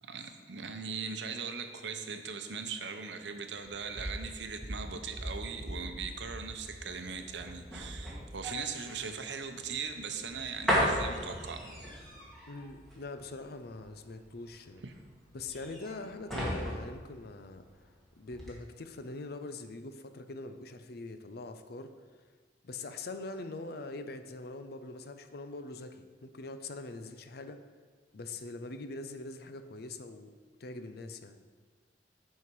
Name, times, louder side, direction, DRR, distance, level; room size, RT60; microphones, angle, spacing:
voice 1, 0.0-11.6 14.8-14.9, right 5 dB, 80° right, 7 dB, 0.7 m, -39 dB
sound 1, 3.7-17.9 18.3-18.5, equal, ahead, 1.9 m, -37 dB
voice 2, 12.5-14.8 15.3-17.7 18.1-21.9 22.6-27.6 28.1-30.3 30.6-31.4, left 2 dB, 60° left, 9 dB, 0.5 m, -43 dB
8.5 x 5.7 x 4.6 m, 1.5 s
head